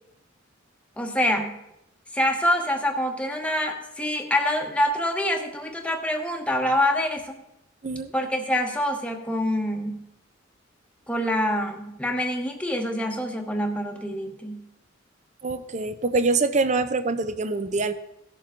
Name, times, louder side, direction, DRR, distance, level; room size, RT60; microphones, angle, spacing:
voice 1, 1.0-1.6 2.1-7.4 8.1-10.1 11.1-14.6, left 1 dB, 5° left, 2 dB, 1.0 m, -26 dB
voice 2, 15.4-17.9, right 3 dB, 35° right, 11 dB, 0.6 m, -25 dB
17.0 x 7.0 x 3.7 m, 0.84 s
head